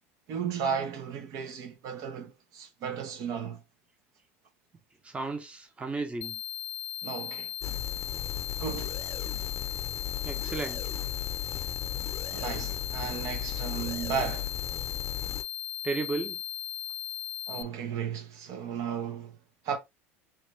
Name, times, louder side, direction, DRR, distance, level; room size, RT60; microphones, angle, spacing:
voice 1, 0.3-3.6 7.0-7.5 8.6-9.0 12.3-14.5 17.5-19.4 19.6-19.8, right 7 dB, 55° right, 0.9 m, -34 dB
voice 2, 5.0-6.4 10.2-10.8 15.8-16.4, right 3 dB, 15° right, 0.9 m, -34 dB
sound 1, 6.2-17.6, left 11 dB, 80° left, 0.4 m, -37 dB
sound 2, 7.6-15.4, left 11 dB, 40° left, 0.8 m, -36 dB
3.2 x 3.1 x 3.2 m
hypercardioid pair, 75°, 7 cm